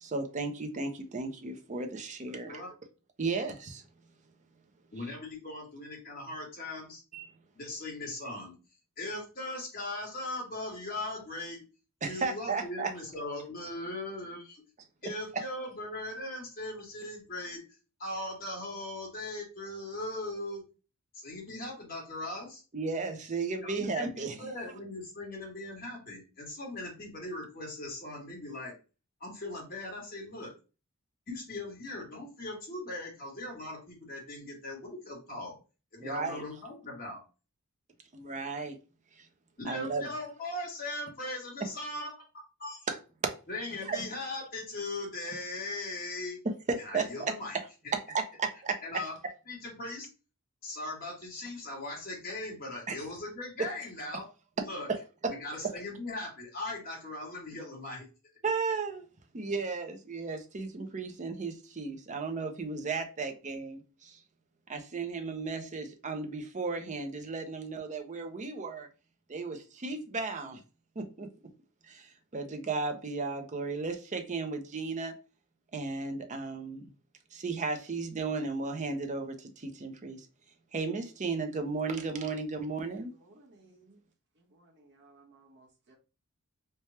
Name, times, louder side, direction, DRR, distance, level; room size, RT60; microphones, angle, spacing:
voice 1, 0.0-2.6 3.2-3.8 7.1-7.2 12.0-12.9 15.3-15.4 22.7-24.5 36.0-36.4 38.1-38.8 39.2-39.3 39.6-40.0 42.9-43.0 43.2-43.4 43.8-44.1 46.7-47.3 48.1-48.8 52.9-53.0 54.9-55.0 55.2-55.3 58.4-59.1 59.3-64.2 64.7-68.9 69.3-70.6 71.0-71.3 71.8-75.1 75.7-76.9 77.3-80.3 80.7-83.2, right 4 dB, 35° right, 0.6 m, -34 dB
voice 2, 4.9-7.0 7.5-8.5 9.0-11.6 12.0-14.6 15.0-17.6 18.0-20.6 21.1-22.6 23.6-28.7 29.2-30.5 31.3-35.6 35.9-37.2 39.6-42.1 42.6-42.9 43.5-46.4 46.8-47.6 47.8-47.9 48.8-49.1 49.5-50.1 50.6-54.2 54.6-54.9 55.4-58.1, left 2 dB, 40° left, 1.5 m, -39 dB
voice 3, 82.9-84.0 84.3-86.0, right 2 dB, 50° right, 1.0 m, -60 dB
3.3 x 2.3 x 4.1 m
head